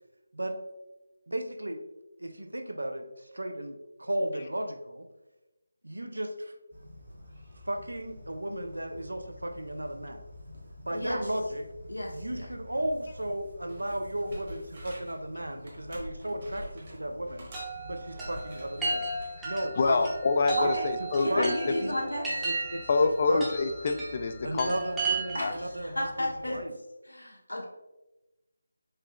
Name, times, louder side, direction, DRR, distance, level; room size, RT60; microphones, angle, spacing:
voice 1, 1.3-1.8 2.2-5.1 5.8-6.5 7.7-10.2 10.8-11.6 12.1-17.5 17.8-19.0 19.4-20.0 20.6-20.7 21.0-21.5 21.8-21.9 22.4-22.9 23.3-23.4 24.4-26.7, right 1 dB, 80° right, 5 dB, 0.5 m, -35 dB
sound 1, 6.7-26.6, left 1 dB, 60° right, 1.2 m, -49 dB
voice 2, 11.9-12.5 19.8-20.0 20.6-20.9 21.2-22.2 25.3-26.6 27.0-27.7, left 1 dB, 85° left, -3 dB, 1.2 m, -33 dB
sound 2, 13.7-15.2 15.6-17.0 17.4-19.3 19.8-20.0, right 1 dB, 40° right, 1.2 m, -46 dB
Chime, 17.5-25.6, right 4 dB, 10° right, 0.7 m, -35 dB
voice 3, 19.8-21.8 22.9-24.7 25.4-25.5, left 3 dB, 35° left, 7 dB, 0.3 m, -26 dB
4.9 x 2.8 x 2.2 m, 1.0 s
figure-of-eight pair, 160°, 0 cm